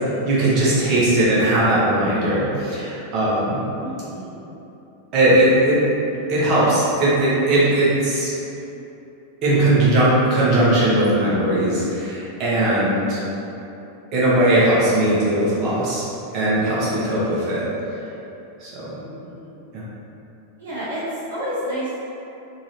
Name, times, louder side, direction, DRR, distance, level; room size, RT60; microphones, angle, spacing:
voice 1, 0.2-3.6 5.1-5.8 6.3-8.3 9.4-13.2 14.1-16.1 16.3-17.6 18.6-18.7 19.7-19.8, right 1 dB, 35° right, -8 dB, 1.1 m, -19 dB
voice 2, 3.8-4.5 19.0-19.6 20.6-22.0, equal, 65° right, -9 dB, 0.8 m, -30 dB
3.7 x 2.8 x 3.1 m, 2.9 s
figure-of-eight pair, 90°, 0 cm